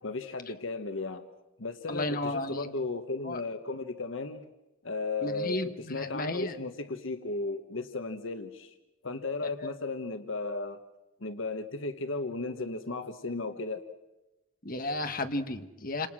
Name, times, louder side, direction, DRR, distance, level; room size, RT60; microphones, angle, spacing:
voice 1, 0.0-1.2 1.6-4.5 4.8-8.7 9.0-10.8 11.2-13.8, left 3 dB, 65° left, 9 dB, 1.2 m, -35 dB
voice 2, 1.9-2.7 3.2-3.4 5.2-6.6 9.6-9.7 14.6-16.1, left 2 dB, 40° left, 7 dB, 1.5 m, -33 dB
28.5 x 27.5 x 6.3 m, 1.0 s
head